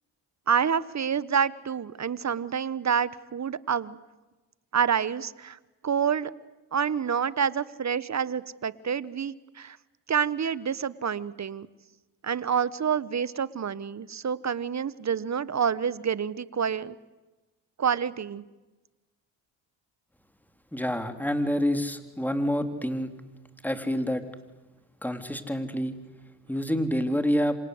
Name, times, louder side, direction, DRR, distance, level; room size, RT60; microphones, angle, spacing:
voice 1, 0.5-4.0 4.7-5.6 5.8-6.3 6.7-9.8 10.1-11.7 12.2-17.0 17.8-18.4, right 7 dB, 35° right, 18 dB, 1.4 m, -28 dB
voice 2, 20.7-23.1 23.6-24.2 25.0-25.9 26.5-27.6, equal, 5° left, 8 dB, 3.6 m, -27 dB
27.0 x 27.0 x 8.1 m, 1.1 s
supercardioid pair, 65°, 45 cm